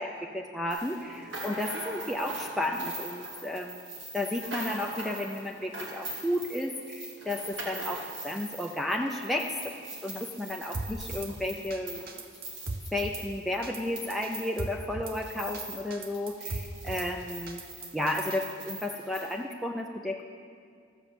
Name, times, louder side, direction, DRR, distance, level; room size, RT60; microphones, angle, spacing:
voice 1, 0.0-9.5 10.0-12.0 12.9-17.6 17.9-20.2, left 1 dB, ahead, 0 dB, 0.4 m, -33 dB
sound 1, 0.7-15.9 16.1-19.4, right 1 dB, 65° right, 2.2 m, -42 dB
Drum kit / Snare drum, 10.7-11.3 11.7-11.8 12.1-13.2 13.6-13.8 14.1-15.2 15.5-15.6 15.9-17.1 17.5-18.4, right 3 dB, 45° right, 0.8 m, -38 dB
13.5 x 7.8 x 7.0 m, 2.2 s
head